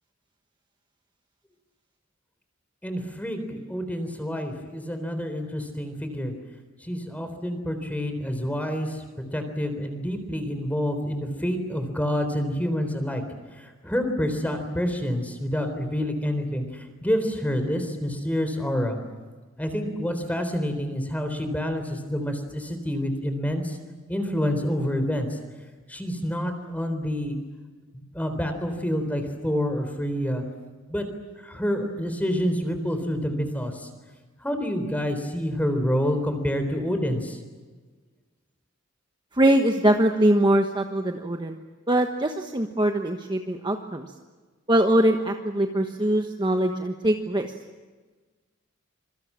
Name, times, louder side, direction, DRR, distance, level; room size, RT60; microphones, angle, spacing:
voice 1, 2.8-6.3 6.8-9.0 9.3-13.2 13.6-19.0 19.6-23.8 24.1-25.4 25.9-27.4 27.9-30.4 30.9-31.1 31.4-33.9 34.4-37.4, equal, 10° left, 7 dB, 3.8 m, -28 dB
voice 2, 39.3-41.6 41.9-44.1 44.7-47.5, right 1 dB, 20° right, 4 dB, 1.3 m, -22 dB
27.0 x 23.5 x 7.5 m, 1.3 s
head